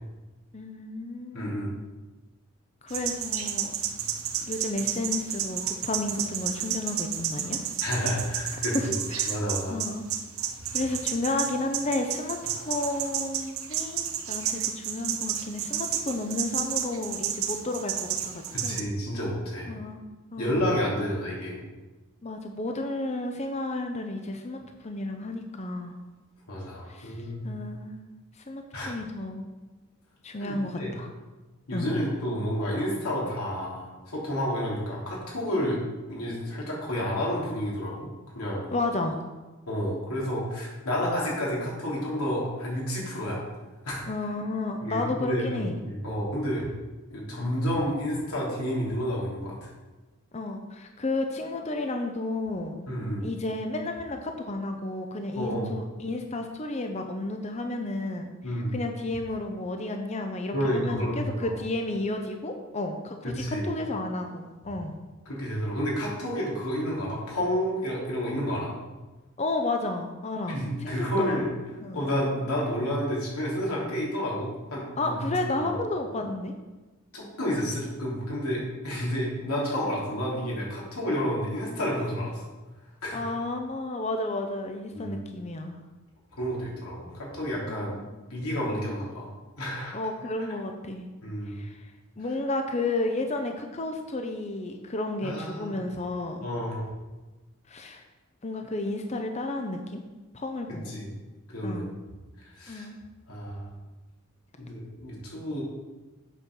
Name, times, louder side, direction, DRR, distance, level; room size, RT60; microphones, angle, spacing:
voice 1, 0.5-1.7 2.8-3.7 4.4-7.6 8.5-8.8 9.1-9.4 9.7-10.1 10.7-12.4 12.6-18.8 19.7-20.0 20.3-20.8 22.2-26.0 26.9-27.2 27.4-28.0 28.5-29.5 30.2-31.1 31.7-31.9 38.7-39.2 44.1-45.8 50.3-52.9 53.2-58.3 58.7-64.9 69.4-71.4 71.8-72.1 75.0-76.5 83.1-85.7 87.6-88.2 88.7-88.9 89.9-91.1 91.5-91.8 92.2-96.5 97.7-98.0 98.4-100.0 100.3-100.9 101.6-101.9 102.7-103.0, left 2 dB, 30° left, 5 dB, 0.6 m, -32 dB
voice 2, 1.3-1.7 7.8-8.9 9.3-9.8 18.5-19.7 20.4-21.6 26.5-27.5 28.7-28.9 30.4-30.9 31.7-35.8 36.1-38.1 38.3-38.7 39.7-43.4 43.8-44.0 44.8-46.6 47.1-49.7 52.9-53.3 55.3-55.7 58.4-58.8 60.5-61.5 63.2-63.7 65.2-68.7 70.5-71.5 71.9-75.7 77.1-82.4 83.0-83.2 84.9-85.2 86.4-87.9 88.3-89.3 89.6-89.9 91.2-91.6 95.2-95.8 96.4-96.9 100.8-101.1 101.5-101.9 102.5-102.9 103.3-103.7 104.6-105.6, equal, 90° left, -4 dB, 3.2 m, -30 dB
sound 1, 2.9-18.8, right 9 dB, 75° right, 0.8 m, -31 dB
8.2 x 5.5 x 6.1 m, 1.2 s
head